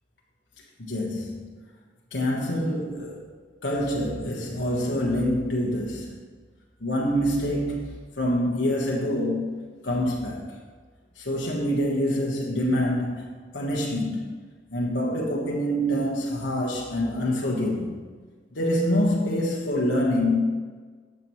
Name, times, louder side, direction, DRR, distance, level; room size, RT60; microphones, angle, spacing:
voice 1, 0.8-1.5 2.1-3.3 3.6-6.1 6.8-9.5 9.8-10.6 11.2-14.3 14.7-18.0 18.5-20.5, equal, 90° left, -3 dB, 1.3 m, -26 dB
12.5 x 7.9 x 3.1 m, 1.5 s
head